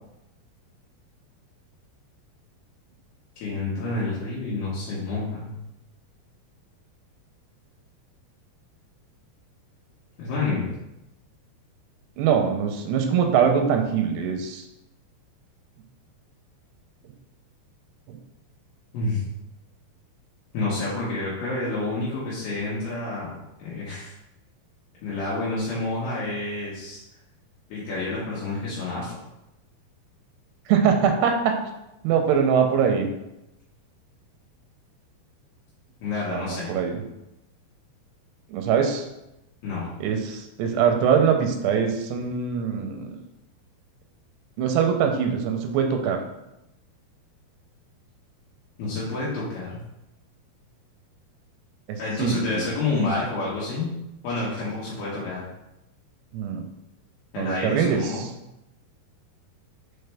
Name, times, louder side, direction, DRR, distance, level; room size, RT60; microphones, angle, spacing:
voice 1, 3.4-5.6 10.2-10.7 18.9-19.2 20.5-23.3 23.6-24.1 25.0-27.0 27.7-29.1 36.0-36.8 39.6-39.9 48.8-49.8 52.0-53.9 54.2-55.5 57.3-58.3, left 3 dB, 75° left, -8 dB, 3.1 m, -29 dB
voice 2, 12.2-14.6 18.1-18.2 30.7-31.5 32.0-33.1 36.3-37.0 38.5-39.0 40.0-43.2 44.6-46.2 51.9-52.7 56.3-56.7 57.4-58.0, right 7 dB, 90° right, 4 dB, 2.8 m, -23 dB
6.7 x 4.2 x 3.4 m, 0.89 s
omnidirectional pair, 4.6 m